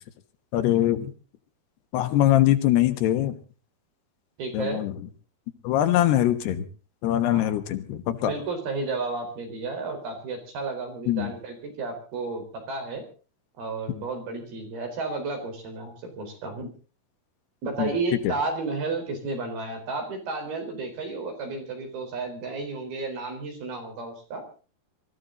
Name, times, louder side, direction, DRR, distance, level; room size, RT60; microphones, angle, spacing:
voice 1, 0.5-1.1 1.9-3.4 4.5-4.9 5.6-6.6 7.0-8.3 11.1-11.3 17.8-17.9 18.2-18.3, left 13 dB, 85° left, 9 dB, 3.4 m, -22 dB
voice 2, 4.4-4.8 7.3-7.6 8.2-13.1 13.6-16.7 17.6-24.4, right 3 dB, 70° right, 4 dB, 6.1 m, -32 dB
24.5 x 14.5 x 3.9 m, 0.37 s
omnidirectional pair, 4.6 m